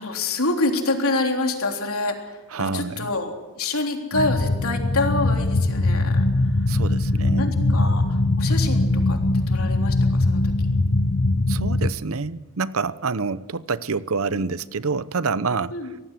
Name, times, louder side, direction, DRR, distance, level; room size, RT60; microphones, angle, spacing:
voice 1, 0.0-6.8 7.4-9.2 9.5-10.5 14.3-14.4 15.7-15.9, left 2 dB, 75° left, 2 dB, 3.6 m, -27 dB
voice 2, 2.5-3.1 6.7-7.9 11.5-15.7, right 4 dB, 70° right, 16 dB, 0.8 m, -27 dB
sound 1, 4.1-11.9, left 2 dB, 55° left, 1.0 m, -21 dB
24.0 x 18.0 x 7.6 m, 1.1 s
head